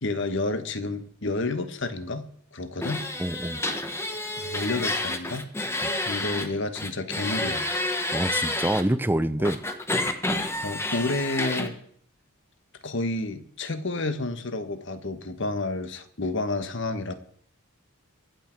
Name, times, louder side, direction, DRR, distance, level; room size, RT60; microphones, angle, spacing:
voice 1, 0.0-2.3 2.5-3.0 4.4-5.5 6.0-7.7 9.4-9.5 10.6-11.7 12.8-17.1, left 2 dB, 55° left, 10 dB, 1.2 m, -30 dB
sound 1, 2.8-6.5 6.7-8.8 9.4-11.7, left 2 dB, 10° left, 1.1 m, -29 dB
voice 2, 3.2-3.6 5.8-5.9 8.1-9.6, right 1 dB, 10° right, 13 dB, 0.5 m, -26 dB
23.5 x 8.4 x 4.5 m, 0.62 s
head